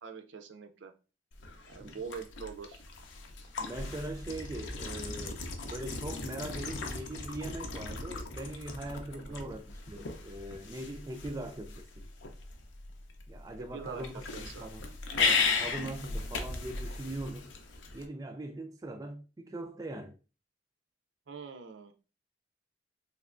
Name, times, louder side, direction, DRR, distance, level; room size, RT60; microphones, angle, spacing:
voice 1, 0.0-0.9 1.6-2.8 9.1-9.6 13.7-14.7 21.3-21.9, right 5 dB, 80° right, 0.5 m, -44 dB
sound 1, 1.3-18.0, left 4 dB, 85° left, 0.6 m, -37 dB
voice 2, 3.6-12.1 13.3-14.9 15.1-17.5 17.9-20.1, right 1 dB, 20° right, 0.3 m, -41 dB
3.4 x 3.0 x 2.4 m
head